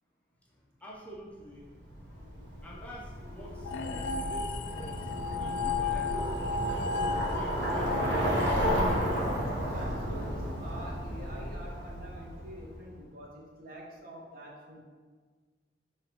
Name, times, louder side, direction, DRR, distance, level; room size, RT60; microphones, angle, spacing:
voice 1, 0.4-1.7 2.0-2.1 2.6-8.0, right 1 dB, 10° left, -4 dB, 0.5 m, -48 dB
sound 1, 1.5-7.7, left 1 dB, 30° right, 1.2 m, -48 dB
Bicycle, 1.8-12.7, equal, 80° right, 0.9 m, -32 dB
sound 2, 3.6-9.1, left 4 dB, 75° left, 0.3 m, -35 dB
voice 2, 9.7-14.8, equal, 50° right, -2 dB, 0.8 m, -46 dB
5.7 x 3.0 x 2.8 m, 1.5 s
head